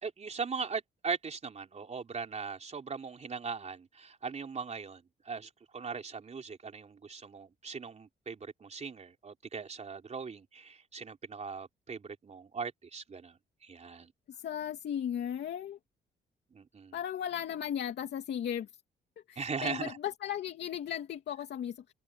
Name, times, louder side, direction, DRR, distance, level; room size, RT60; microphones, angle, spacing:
voice 1, 0.0-13.4 13.6-14.1 16.5-17.0 19.4-20.0, right 5 dB, 40° right, 3.7 m, -39 dB
voice 2, 14.3-15.8 16.9-18.7 19.3-21.9, left 9 dB, 70° left, 2.8 m, -36 dB
cardioid pair, 90°, 18 cm